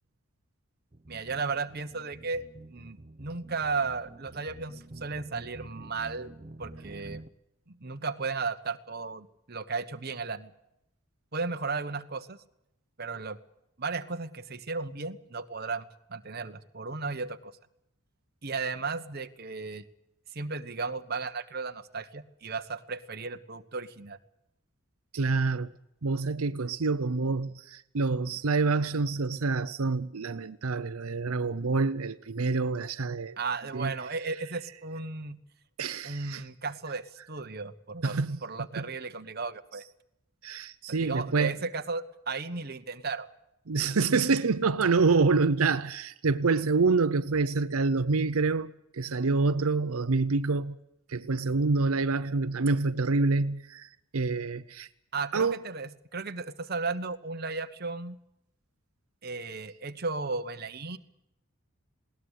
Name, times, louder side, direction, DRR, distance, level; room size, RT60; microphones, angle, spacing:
sound 1, 0.9-7.3, right 1 dB, 30° right, 0.8 m, -48 dB
voice 1, 1.1-6.3 6.6-7.2 7.7-10.5 11.3-12.4 13.0-13.4 13.8-17.6 18.4-19.8 20.3-24.2 33.4-35.4 36.0-39.8 40.9-43.3 55.1-58.2 59.2-61.0, right 4 dB, 45° right, 1.3 m, -35 dB
voice 2, 25.1-25.7 26.0-33.4 33.7-33.9 35.8-36.4 38.0-38.4 38.8-38.9 40.4-41.6 43.7-50.8 51.1-54.9 55.3-55.6, right 4 dB, 85° right, 0.7 m, -27 dB
20.5 x 18.5 x 8.3 m
head